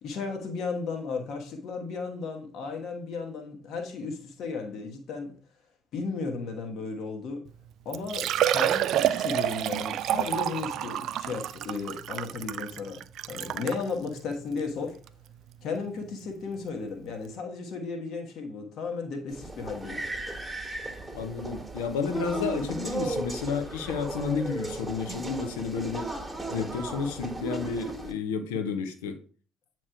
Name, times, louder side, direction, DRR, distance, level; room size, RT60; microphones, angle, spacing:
voice 1, 0.0-5.3 5.9-7.4 7.8-15.0 15.6-20.0, left 4 dB, 55° left, 1.3 m, -35 dB
Liquid, 7.5-7.6 7.9-13.8 14.5-14.6 15.1-15.2 16.8-16.9 17.1-17.2, right 11 dB, 55° right, 0.3 m, -28 dB
sound 1, 19.3-28.1, right 2 dB, 5° right, 1.5 m, -35 dB
voice 2, 21.1-26.1 26.5-29.2, left 5 dB, 70° left, 0.9 m, -31 dB
8.6 x 3.1 x 4.6 m
figure-of-eight pair, 50°, 0 cm